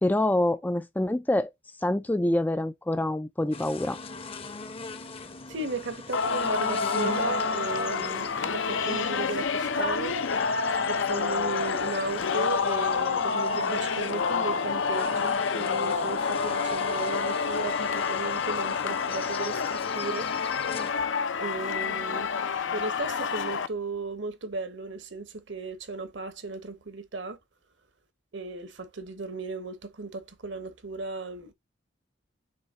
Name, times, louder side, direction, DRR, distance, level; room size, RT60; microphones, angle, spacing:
voice 1, 0.0-1.5 1.8-4.0, left 1 dB, 10° left, 0.3 m, -26 dB
sound 1, 3.5-20.9, left 3 dB, 30° left, 0.7 m, -41 dB
voice 2, 5.5-10.2 10.9-20.3 21.4-22.3 22.7-27.4 28.3-31.5, right 3 dB, 65° right, 1.1 m, -35 dB
Singing, 6.1-23.7, left 5 dB, 70° left, 0.6 m, -28 dB
6.8 x 3.3 x 4.1 m
head